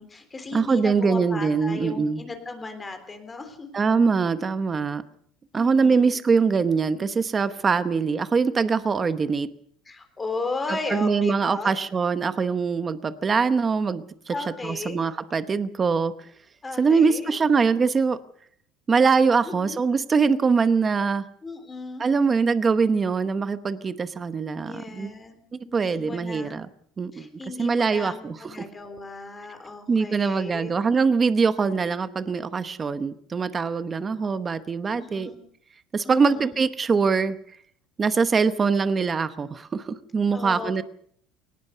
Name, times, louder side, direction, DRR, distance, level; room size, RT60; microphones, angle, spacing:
voice 1, 0.0-3.7 5.5-6.2 9.8-11.8 14.3-15.1 16.6-17.4 19.4-19.8 21.4-22.0 24.6-25.4 25.6-26.6 27.1-30.8 35.0-35.4 36.0-36.6 40.3-40.8, left 3 dB, 10° left, 7 dB, 3.3 m, -36 dB
voice 2, 0.5-2.2 3.7-5.0 5.5-9.5 10.7-14.3 14.6-16.1 16.8-18.2 18.9-21.3 22.0-25.1 25.5-26.7 27.0-27.3 27.6-28.5 29.9-35.3 35.9-37.4 38.0-40.8, right 5 dB, 15° right, 12 dB, 0.9 m, -23 dB
23.0 x 19.0 x 6.7 m, 0.62 s
cardioid pair, 175°, 0 cm